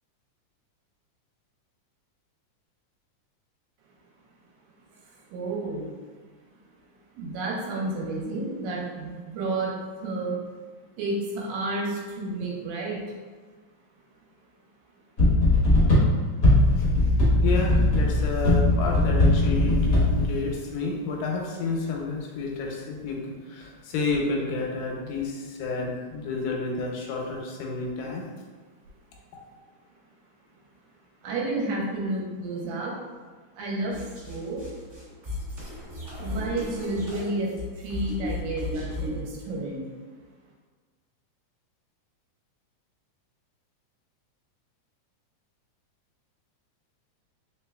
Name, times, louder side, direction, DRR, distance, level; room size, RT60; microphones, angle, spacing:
voice 1, 5.0-5.9 7.1-10.4 11.0-13.0 15.6-15.7 15.9-16.3 16.6-16.7 17.4-17.5 31.2-33.0 33.5-34.6 36.2-39.8, right 2 dB, 75° right, -2 dB, 1.8 m, -31 dB
sound 1, 15.2-20.3, left 1 dB, 65° left, 0.8 m, -20 dB
voice 2, 17.4-23.2 23.5-28.3, left 4 dB, 85° left, 0 dB, 2.2 m, -30 dB
sound 2, 33.9-39.2, left 2 dB, 50° right, 0.8 m, -35 dB
4.6 x 3.5 x 2.2 m, 1.4 s
omnidirectional pair, 3.5 m